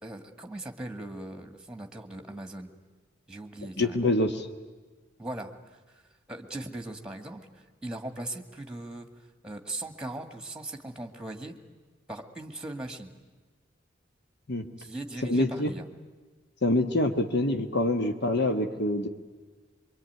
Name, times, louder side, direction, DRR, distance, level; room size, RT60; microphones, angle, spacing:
voice 1, 0.0-2.7 3.3-4.1 5.2-6.0 6.3-9.1 9.4-11.6 12.1-13.1 14.8-15.8, right 2 dB, 5° right, 6 dB, 1.9 m, -39 dB
voice 2, 3.8-4.5 14.5-14.7 15.2-15.7 16.6-19.1, left 1 dB, 60° left, 6 dB, 1.6 m, -26 dB
24.5 x 23.5 x 9.4 m, 1.3 s
head